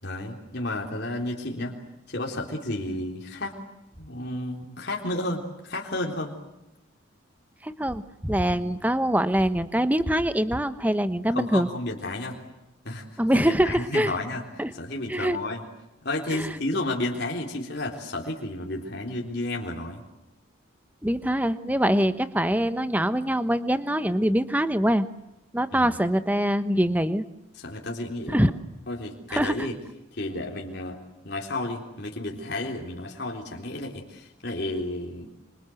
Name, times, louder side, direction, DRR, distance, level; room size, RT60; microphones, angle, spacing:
voice 1, 0.0-1.7 2.1-3.6 4.0-6.4 8.5-8.7 11.3-12.4 12.8-13.0 13.3-14.4 14.7-15.6 16.0-20.0 25.7-25.9 27.5-28.5 28.9-29.8 30.1-31.0 31.2-35.4, left 1 dB, 50° left, 0 dB, 3.8 m, -32 dB
voice 2, 7.6-11.7 13.2-14.1 14.6-14.7 15.1-15.4 16.3-16.6 21.0-25.1 25.5-27.2 28.3-28.5 29.3-29.5, equal, 10° right, 12 dB, 1.1 m, -24 dB
26.5 x 26.5 x 7.9 m, 0.95 s
head